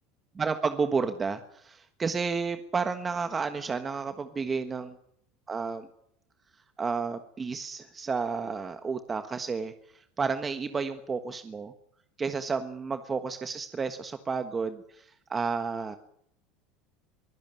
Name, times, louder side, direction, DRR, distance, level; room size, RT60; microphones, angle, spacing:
voice 1, 0.4-5.0 5.5-5.9 6.8-9.7 10.2-11.7 12.2-16.0, right 5 dB, 20° right, 9 dB, 1.4 m, -31 dB
24.0 x 16.5 x 9.2 m, 0.71 s
supercardioid pair, 145°, 0 cm